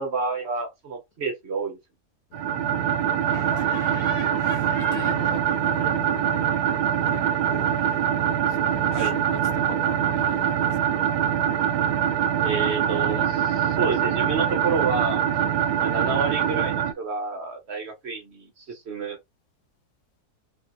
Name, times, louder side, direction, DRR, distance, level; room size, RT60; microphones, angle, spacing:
voice 1, 0.0-1.8 5.8-5.9 8.9-9.1 12.4-15.2 15.8-19.2, right 4 dB, 50° right, 0.9 m, -29 dB
voice 2, 2.3-6.6 7.1-7.8 8.5-10.9, left 8 dB, 75° left, 1.3 m, -43 dB
sound 1, 2.3-16.9, right 9 dB, 80° right, 1.1 m, -24 dB
Laughter, 3.2-6.0 6.3-9.2, left 2 dB, 30° left, 1.1 m, -43 dB
4.3 x 3.6 x 2.5 m
omnidirectional pair, 1.6 m